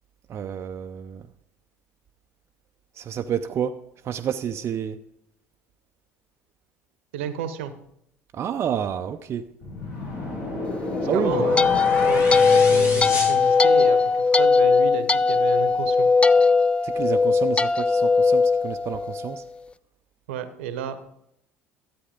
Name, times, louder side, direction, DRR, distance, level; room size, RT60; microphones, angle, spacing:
voice 1, 0.3-1.2 3.0-3.8 4.0-5.0 8.3-9.5 11.1-11.7 16.8-19.4, right 8 dB, 40° right, 0.5 m, -29 dB
voice 2, 7.1-7.7 11.1-16.1 20.3-21.0, right 8 dB, 70° right, 0.9 m, -33 dB
sound 1, 9.6-14.2, left 2 dB, 50° left, 4.3 m, -30 dB
sound 2, 11.0-19.4, left 4 dB, 15° left, 0.3 m, -19 dB
13.0 x 8.4 x 3.8 m
figure-of-eight pair, 65°, 7 cm